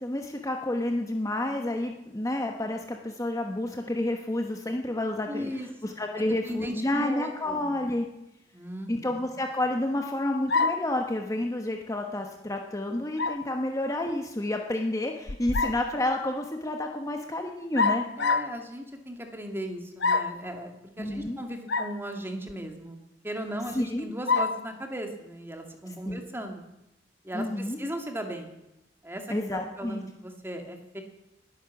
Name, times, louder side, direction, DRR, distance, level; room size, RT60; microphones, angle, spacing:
voice 1, 0.0-5.5 5.8-8.1 8.9-18.1 21.0-21.4 23.7-24.1 26.1-26.2 27.3-27.8 29.3-30.0, left 1 dB, 20° left, 3 dB, 1.1 m, -30 dB
voice 2, 5.3-5.7 6.2-7.8 8.5-9.4 18.2-26.6 27.2-28.5 29.0-31.0, equal, 10° right, 4 dB, 2.1 m, -37 dB
sound 1, 10.5-10.9 13.2-13.5 15.3-15.9 17.8-18.6 20.0-20.4 21.7-22.0 22.5-22.6 24.3-24.6, left 4 dB, 65° left, 0.8 m, -26 dB
20.5 x 9.8 x 7.2 m, 0.91 s
head